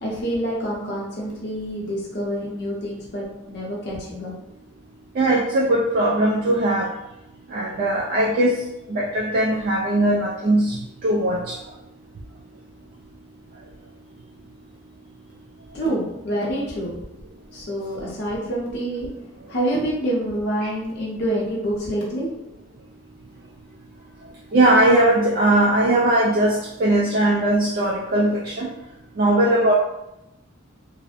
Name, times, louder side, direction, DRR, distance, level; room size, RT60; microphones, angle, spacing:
voice 1, 0.0-4.3 15.7-17.0 17.5-19.1 19.5-22.3, right 1 dB, 55° left, -4 dB, 0.8 m, -27 dB
voice 2, 5.2-6.9 7.5-8.6 8.9-11.6 20.6-20.7 24.5-28.7 29.2-29.7, right 1 dB, 45° right, -3 dB, 0.3 m, -19 dB
2.6 x 2.0 x 2.5 m, 0.89 s
head